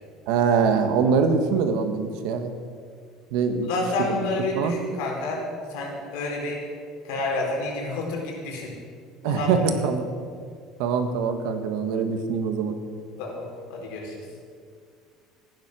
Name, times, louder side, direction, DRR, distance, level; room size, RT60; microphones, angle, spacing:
voice 1, 0.3-2.5 3.3-3.7 4.1-4.2 4.5-4.8 9.2-10.1 10.8-12.7, right 5 dB, 70° right, 7 dB, 1.5 m, -23 dB
voice 2, 3.7-5.4 5.7-6.6 7.0-8.7 9.2-9.6 13.2-14.3, left 2 dB, 80° left, -1 dB, 4.4 m, -29 dB
15.5 x 10.5 x 6.3 m, 2.1 s
cardioid pair, 170°, 0 cm